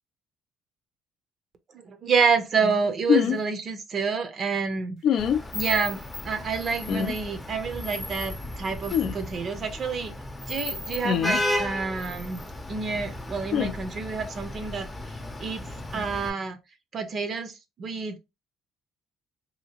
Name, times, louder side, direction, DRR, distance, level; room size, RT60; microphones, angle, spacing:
voice 1, 1.7-5.2 5.5-10.1 10.5-12.4 12.7-14.9 15.4-16.6 16.9-18.2, right 5 dB, 45° right, 0.5 m, -28 dB
sound 1, 3.1-3.4 5.0-5.4 6.9-7.1 8.9-9.1 11.0-11.4 13.5-13.7, left 8 dB, 60° left, 0.4 m, -23 dB
Vehicle horn car horn honking / Traffic noise roadway noise, 5.2-16.3, left 1 dB, 15° left, 0.6 m, -34 dB
2.8 x 2.5 x 2.8 m
supercardioid pair, 90°, 0 cm